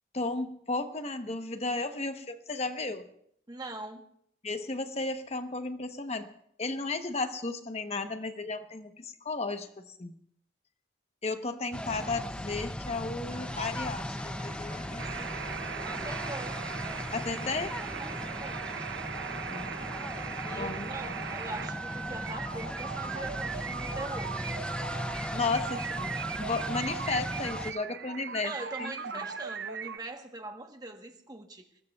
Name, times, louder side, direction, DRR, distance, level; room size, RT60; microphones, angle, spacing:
voice 1, 0.1-3.1 4.4-6.3 6.6-10.2 11.2-15.6 17.1-17.8 19.5-19.9 20.4-21.1 25.3-28.5 28.8-28.9, left 3 dB, 35° left, 8 dB, 1.0 m, -34 dB
voice 2, 3.5-4.0 15.8-16.6 18.0-18.6 20.4-24.3 28.4-31.7, right 2 dB, 20° right, 4 dB, 1.2 m, -42 dB
sound 1, 11.7-27.7, left 1 dB, 5° left, 0.5 m, -38 dB
sound 2, 13.3-27.0, right 2 dB, 45° right, 3.3 m, -50 dB
sound 3, 15.0-30.0, right 7 dB, 65° right, 0.5 m, -38 dB
25.0 x 19.5 x 2.4 m, 0.69 s
head